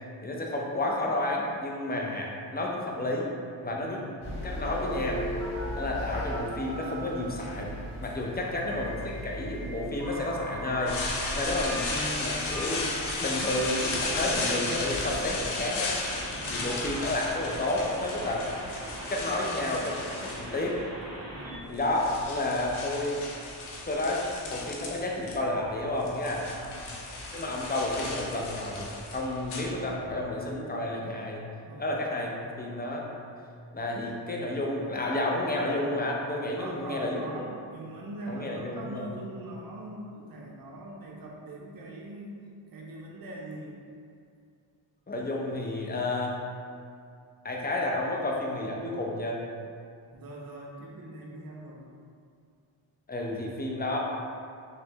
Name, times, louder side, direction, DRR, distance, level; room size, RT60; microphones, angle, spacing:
voice 1, 0.2-3.3 3.6-4.0 4.4-5.3 5.7-12.9 13.2-16.0 16.5-18.5 19.1-20.8 21.7-23.2 23.9-26.5 27.3-31.4 31.8-33.1 33.7-37.4 38.3-39.1 45.1-46.4 47.4-49.4 53.1-54.0, left 1 dB, 20° left, -2 dB, 0.6 m, -31 dB
voice 2, 3.9-4.3 8.4-8.7 11.2-11.8 16.3-16.7 21.3-21.8 26.5-27.0 31.6-32.3 36.6-42.4 42.7-43.8 50.1-51.9, right 1 dB, 50° right, -2 dB, 0.7 m, -42 dB
sound 1, 4.2-10.9, left 1 dB, 55° left, 1.2 m, -39 dB
Telephone, 4.8-7.3 8.7-21.6, right 1 dB, 35° right, 1.0 m, -40 dB
sound 2, 10.9-20.8 21.5-25.4 25.6-30.2, left 3 dB, 90° left, 0.6 m, -35 dB
3.2 x 3.1 x 2.9 m, 2.3 s
cardioid pair, 55°, 47 cm